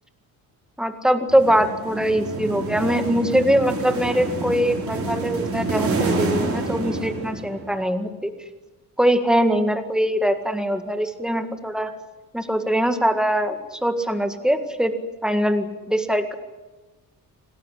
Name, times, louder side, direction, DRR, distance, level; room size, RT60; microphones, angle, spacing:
voice 1, 0.8-8.3 9.0-11.9 12.3-14.9 15.2-16.3, equal, ahead, 7 dB, 1.9 m, -22 dB
sound 1, 1.3-7.8, right 3 dB, 40° right, 5.4 m, -27 dB
26.5 x 19.0 x 9.9 m, 1.2 s
cardioid pair, 175°, 36 cm